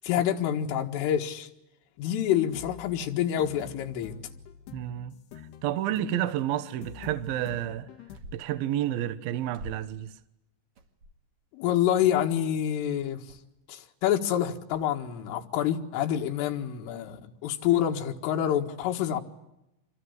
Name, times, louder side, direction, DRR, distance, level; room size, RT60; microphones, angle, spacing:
voice 1, 0.0-1.5 2.0-4.1 11.5-13.2 13.7-19.2, left 10 dB, 80° left, 4.3 m, -27 dB
sound 1, 2.2-8.2, left 8 dB, 60° left, 3.6 m, -46 dB
voice 2, 4.7-5.1 5.6-7.9 8.3-10.1, right 12 dB, 75° right, 2.3 m, -30 dB
sound 2, 8.1-8.6 9.5-10.0 10.7-11.3 12.0-12.2 12.5-12.7 13.3-13.4 14.7-14.9, right 1 dB, 50° right, 1.7 m, -46 dB
26.5 x 23.0 x 9.7 m
omnidirectional pair, 5.7 m